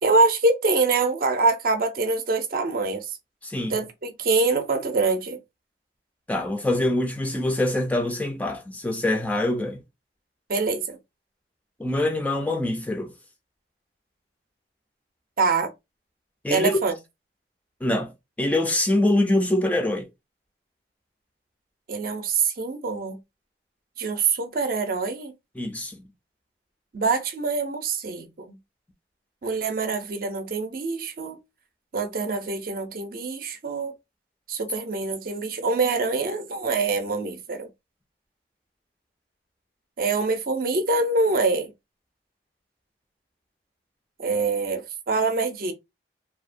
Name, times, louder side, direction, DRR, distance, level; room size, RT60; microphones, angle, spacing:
voice 1, 0.0-3.0 3.7-5.4 10.5-11.0 15.4-15.7 16.5-16.9 21.9-23.2 24.0-25.3 26.9-28.6 29.4-31.4 31.9-33.9 34.5-37.7 40.0-41.7 44.2-45.7, right 3 dB, 55° right, 0.5 m, -25 dB
voice 2, 3.4-3.8 6.3-9.8 11.8-13.1 16.4-16.7 17.8-18.1 18.4-20.1 25.6-26.0, left 1 dB, 10° left, 0.3 m, -24 dB
2.7 x 2.1 x 2.5 m
head